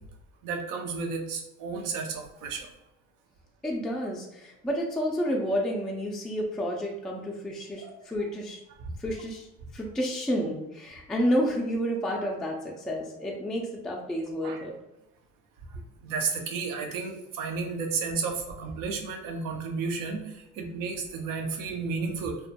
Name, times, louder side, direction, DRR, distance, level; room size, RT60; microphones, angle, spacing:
voice 1, 0.4-2.7 7.8-8.0 8.8-8.9 14.4-14.6 15.7-22.4, right 4 dB, 65° right, 3 dB, 0.6 m, -32 dB
voice 2, 3.6-8.6 9.0-9.5 9.7-14.7, equal, ahead, -2 dB, 0.3 m, -30 dB
2.2 x 2.0 x 2.7 m, 0.89 s
supercardioid pair, 75°, 36 cm